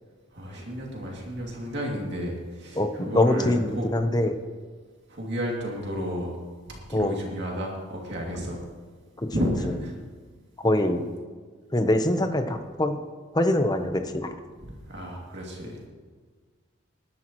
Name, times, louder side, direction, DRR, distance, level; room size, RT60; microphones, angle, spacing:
voice 1, 0.3-3.9 5.1-6.3 6.7-8.6 9.3-9.9 14.6-15.8, equal, 55° right, -2 dB, 2.6 m, -32 dB
voice 2, 2.7-4.4 6.9-7.2 9.2-9.7 10.6-11.0 11.7-13.0 13.3-14.3, left 1 dB, 20° left, 7 dB, 0.8 m, -24 dB
19.0 x 12.0 x 3.1 m, 1.5 s
head